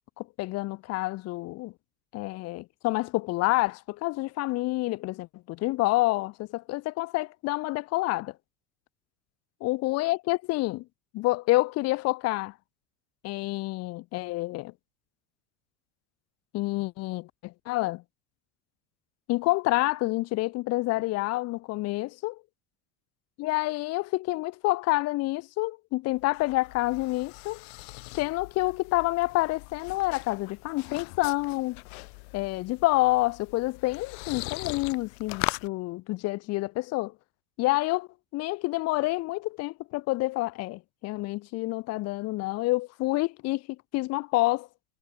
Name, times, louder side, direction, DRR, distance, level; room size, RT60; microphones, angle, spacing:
voice 1, 0.2-1.7 2.1-8.3 9.6-10.8 11.1-12.5 13.2-14.7 16.5-18.0 19.3-22.4 23.4-27.6 28.2-31.8 32.3-37.1 37.6-43.6 43.9-44.7, left 20 dB, 50° left, 1.4 m, -28 dB
sound 1, 26.1-35.7, left 34 dB, 75° left, 5.1 m, -40 dB
cardioid pair, 145°, 32 cm